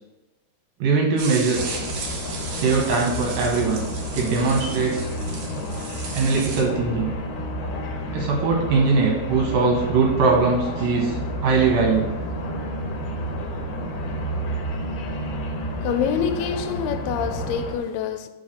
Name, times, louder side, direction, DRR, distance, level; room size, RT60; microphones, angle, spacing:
voice 1, 0.8-1.8 2.5-3.9 4.1-5.1 6.1-7.1 8.1-12.1, right 4 dB, 75° right, 2.7 m, -21 dB
sound 1, 1.2-6.6, right 4 dB, 90° right, 1.4 m, -35 dB
sound 2, 1.5-17.8, equal, 70° left, 2.4 m, -30 dB
voice 2, 15.8-18.3, left 7 dB, 85° left, 2.5 m, -26 dB
5.6 x 4.7 x 6.4 m
omnidirectional pair, 4.5 m